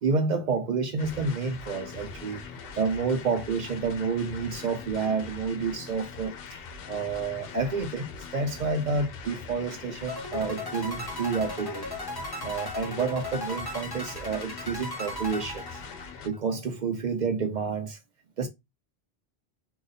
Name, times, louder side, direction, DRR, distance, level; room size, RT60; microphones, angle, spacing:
voice 1, 0.0-2.4 2.8-6.6 6.9-8.1 8.3-11.8 12.4-15.6 16.2-18.0 18.4-18.5, right 4 dB, 55° right, 0.6 m, -29 dB
sound 1, 1.0-16.3, left 5 dB, 70° left, 0.7 m, -42 dB
sound 2, 10.1-16.4, left 1 dB, 25° left, 0.6 m, -37 dB
2.5 x 2.3 x 3.9 m
omnidirectional pair, 1.1 m